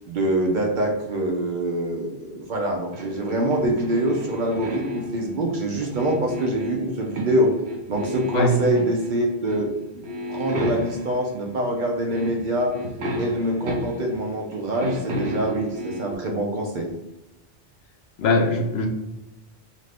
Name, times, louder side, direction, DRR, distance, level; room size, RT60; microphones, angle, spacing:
voice 1, 0.1-7.5 7.9-10.0 10.3-12.7 13.2-16.9, right 1 dB, 60° right, 1 dB, 0.6 m, -25 dB
sound 1, 2.9-5.3 5.8-7.4 7.7-9.1 9.5-9.7 10.0-11.2 11.8-11.9 12.1-14.2 14.5-16.1, equal, 80° right, 0.9 m, -32 dB
voice 2, 18.2-18.9, left 2 dB, 75° left, 3 dB, 0.8 m, -21 dB
2.6 x 2.5 x 3.3 m, 0.97 s
omnidirectional pair, 1.1 m